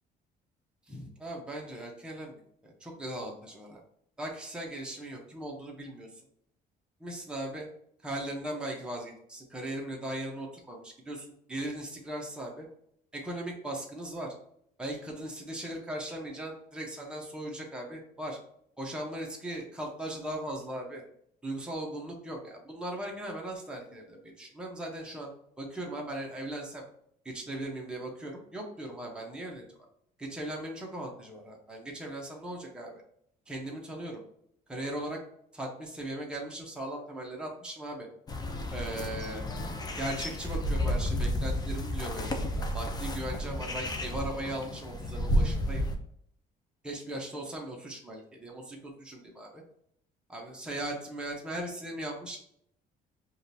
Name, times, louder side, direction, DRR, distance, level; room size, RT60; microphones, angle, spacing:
voice 1, 0.9-2.3 2.6-3.8 4.2-6.1 7.0-7.7 8.0-12.7 13.1-14.3 14.8-18.4 18.8-21.0 21.4-25.3 25.6-26.8 27.2-29.8 30.2-33.0 33.5-34.2 34.7-35.2 35.5-38.1 38.7-39.4 39.9-45.8 46.8-49.6 50.3-52.4, right 1 dB, 5° right, -2 dB, 1.0 m, -38 dB
sound 1, 38.3-46.0, equal, 25° left, 0.6 m, -31 dB
5.0 x 2.5 x 2.8 m, 0.69 s
cardioid pair, 110°, 17 cm